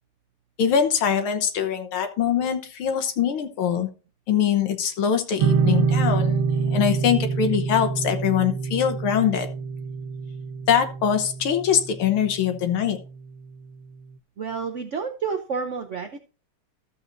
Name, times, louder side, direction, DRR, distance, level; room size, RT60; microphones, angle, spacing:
voice 1, 0.6-3.9 4.3-9.5 10.7-13.0, left 8 dB, 80° left, 7 dB, 1.8 m, -23 dB
sound 1, 5.4-12.6, right 5 dB, 65° right, 1.6 m, -26 dB
voice 2, 14.4-16.2, right 5 dB, 85° right, 4 dB, 0.6 m, -29 dB
14.0 x 7.1 x 2.6 m, 0.34 s
omnidirectional pair, 2.3 m